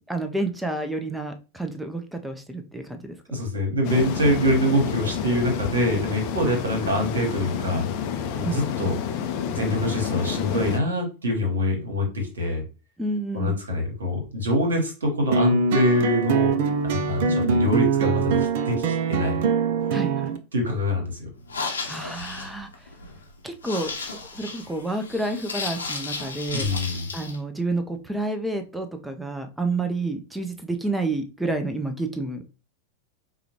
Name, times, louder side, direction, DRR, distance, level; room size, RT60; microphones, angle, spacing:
voice 1, 0.1-3.2 8.4-8.6 13.0-13.6 19.9-20.3 21.9-22.7 23.4-26.7 27.1-32.4, right 2 dB, 5° right, 7 dB, 0.6 m, -29 dB
voice 2, 3.3-7.9 8.3-9.0 9.5-12.6 13.3-16.5 16.8-19.4 20.5-21.3 26.5-27.1, left 1 dB, 70° right, 2 dB, 1.3 m, -25 dB
sound 1, 3.8-10.8, left 8 dB, 45° left, 0.5 m, -29 dB
sound 2, 15.3-20.4, right 5 dB, 50° right, 0.4 m, -23 dB
sound 3, 21.4-27.4, left 4 dB, 75° left, 0.7 m, -34 dB
4.8 x 2.3 x 2.9 m, 0.32 s
figure-of-eight pair, 90°, 0 cm